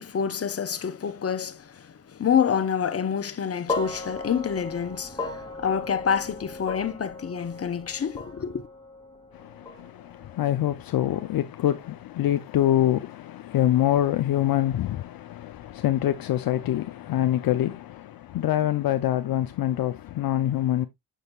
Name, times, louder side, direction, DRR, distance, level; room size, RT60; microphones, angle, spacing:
voice 1, 0.0-8.7, left 7 dB, 35° left, 1.0 m, -27 dB
sound 1, 3.7-12.0, left 3 dB, 10° left, 1.8 m, -37 dB
voice 2, 9.3-20.9, left 12 dB, 60° left, 0.6 m, -25 dB
6.5 x 6.5 x 2.3 m
supercardioid pair, 55°, 39 cm